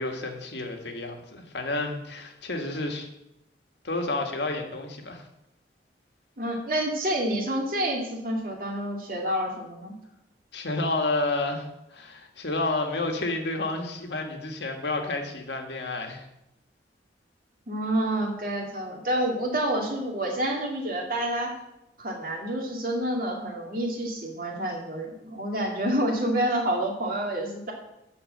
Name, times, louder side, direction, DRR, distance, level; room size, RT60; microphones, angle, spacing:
voice 1, 0.0-3.1 3.8-5.2 10.5-16.3, left 2 dB, 70° left, 3 dB, 1.7 m, -30 dB
voice 2, 6.4-9.9 17.7-21.6 22.0-27.7, right 1 dB, 50° right, 0 dB, 2.3 m, -28 dB
12.0 x 4.3 x 7.7 m, 0.86 s
head